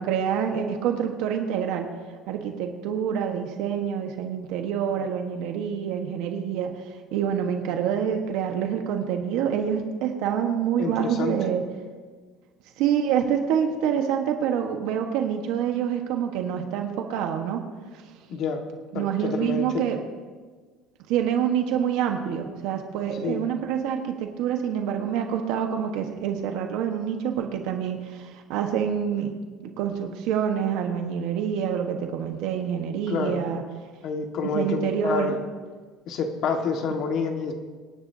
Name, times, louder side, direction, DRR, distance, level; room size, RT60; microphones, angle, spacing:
voice 1, 0.0-1.9 2.3-6.7 7.1-11.6 12.8-17.6 18.9-20.0 21.1-29.4 29.6-33.6 34.5-35.3, right 8 dB, 70° right, 4 dB, 1.3 m, -26 dB
voice 2, 10.8-11.4 18.3-18.6 18.9-19.8 23.2-23.4 33.1-33.5 34.0-35.4 36.1-37.5, left 5 dB, 50° left, 4 dB, 1.6 m, -28 dB
25.5 x 10.5 x 2.8 m, 1.5 s
cardioid pair, 165°, 0 cm